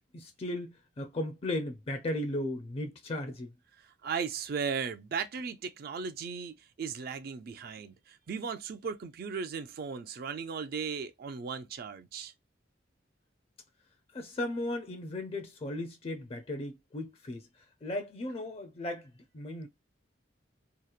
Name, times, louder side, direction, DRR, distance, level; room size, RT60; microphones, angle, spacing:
voice 1, 0.1-3.5 14.1-17.5 17.8-19.7, left 1 dB, 30° left, 0.4 m, -36 dB
voice 2, 3.8-12.3, right 6 dB, 55° right, 0.4 m, -37 dB
2.8 x 2.0 x 2.4 m
head